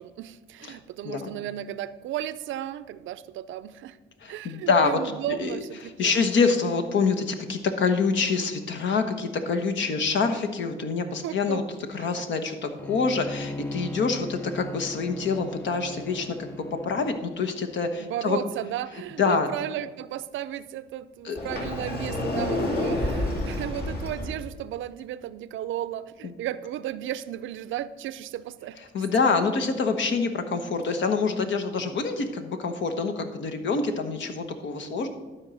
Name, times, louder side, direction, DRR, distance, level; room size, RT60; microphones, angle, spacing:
voice 1, 0.0-4.0 4.3-6.5 11.2-11.6 12.0-12.2 18.0-28.8, right 12 dB, 75° right, 16 dB, 0.5 m, -34 dB
voice 2, 4.2-5.0 5.3-5.6 6.0-11.6 11.9-16.4 16.8-18.4 19.2-19.5 21.2-21.4 26.2-26.3 28.9-35.1, left 4 dB, 70° left, 6 dB, 1.2 m, -26 dB
Bowed string instrument, 12.8-17.3, left 2 dB, 10° left, 0.3 m, -38 dB
Sliding door, 21.4-24.4, left 2 dB, 50° left, 2.2 m, -29 dB
12.0 x 4.6 x 6.2 m, 1.3 s
cardioid pair, 90°, 20 cm